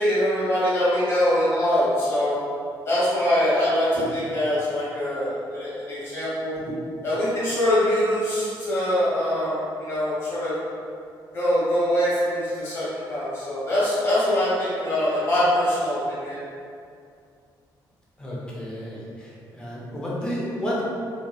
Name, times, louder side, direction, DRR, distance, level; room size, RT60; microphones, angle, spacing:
voice 1, 0.0-2.4 2.8-6.6 7.0-10.6 11.3-16.4, left 1 dB, 30° left, -11 dB, 1.0 m, -23 dB
voice 2, 18.2-20.8, equal, 10° left, -6 dB, 0.4 m, -31 dB
2.7 x 2.1 x 2.2 m, 2.3 s
cardioid pair, 175°, 8 cm